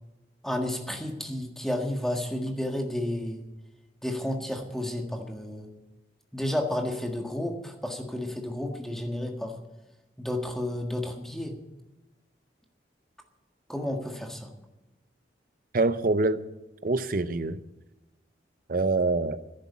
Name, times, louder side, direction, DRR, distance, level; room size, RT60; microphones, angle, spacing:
voice 1, 0.4-3.4 4.0-5.7 6.3-9.5 10.2-11.6 13.7-14.5, left 1 dB, ahead, 1.7 m, -31 dB
voice 2, 15.7-16.5 16.8-17.6 18.7-19.4, right 3 dB, 50° right, 0.7 m, -25 dB
11.0 x 10.0 x 8.5 m
head